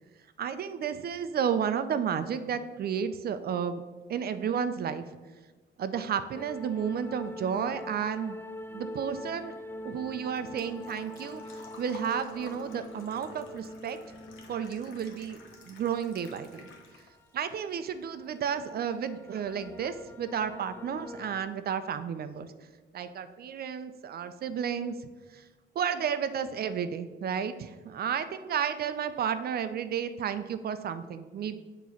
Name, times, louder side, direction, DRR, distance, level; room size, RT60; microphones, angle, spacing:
voice 1, 0.4-3.8 4.1-5.0 5.8-8.4 8.7-9.6 9.8-14.0 14.5-15.4 15.7-16.6 17.3-22.5 22.9-24.9 25.3-25.4 25.8-31.6, right 7 dB, 50° right, 11 dB, 0.5 m, -32 dB
sound 1, 6.3-21.4, left 1 dB, 10° left, 0.4 m, -45 dB
Engine / Trickle dribble / Fill (with liquid), 9.5-17.3 17.7-18.7 19.0-19.1 21.0-21.1 21.2-21.6 21.9-22.0 22.3-22.4, left 3 dB, 80° left, 1.1 m, -52 dB
7.1 x 3.0 x 5.7 m, 1.3 s
cardioid pair, 90°, 20 cm